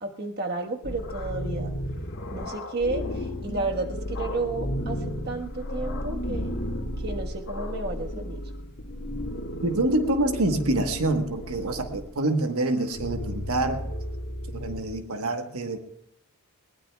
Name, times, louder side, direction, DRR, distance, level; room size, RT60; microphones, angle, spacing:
voice 1, 0.0-1.7 2.3-5.0 5.2-6.5 7.0-8.4, right 3 dB, 45° right, 3 dB, 1.4 m, -32 dB
sound 1, 0.8-12.0 12.7-14.8, equal, 55° left, 1.9 m, -33 dB
voice 2, 9.6-13.8 14.5-15.8, right 2 dB, 75° right, 6 dB, 1.3 m, -26 dB
21.0 x 19.5 x 2.3 m, 0.78 s
head